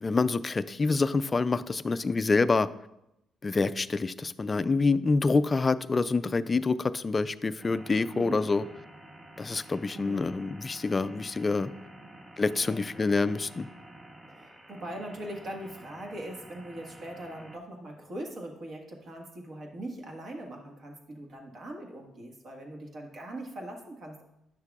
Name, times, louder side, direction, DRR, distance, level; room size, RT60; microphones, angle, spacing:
voice 1, 0.0-2.7 3.4-8.6 9.4-11.7 12.4-13.7, left 3 dB, 30° left, 14 dB, 0.3 m, -27 dB
sound 1, 7.6-17.6, right 1 dB, 25° right, 1.0 m, -50 dB
voice 2, 9.9-10.2 12.0-12.2 12.6-12.9 14.3-24.2, right 1 dB, 55° right, 1 dB, 1.6 m, -41 dB
10.5 x 6.5 x 2.4 m, 0.86 s
cardioid pair, 90°, 0 cm